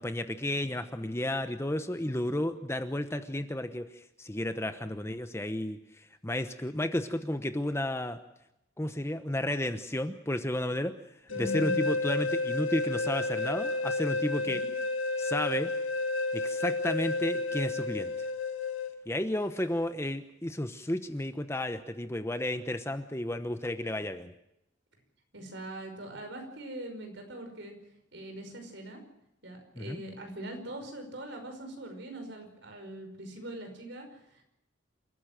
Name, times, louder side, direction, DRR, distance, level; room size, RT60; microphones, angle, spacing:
voice 1, 0.0-8.2 8.8-10.9 11.4-14.6 15.2-15.7 16.3-18.1 19.1-24.3 29.8-30.0, left 1 dB, 15° left, 9 dB, 1.0 m, -32 dB
sound 1, 11.3-18.9, left 3 dB, 75° left, 2.3 m, -31 dB
voice 2, 11.3-11.9 14.5-14.7 25.3-27.7 28.1-29.0 29.4-34.4, right 1 dB, 60° right, 4 dB, 5.5 m, -42 dB
28.5 x 14.5 x 7.6 m, 0.83 s
head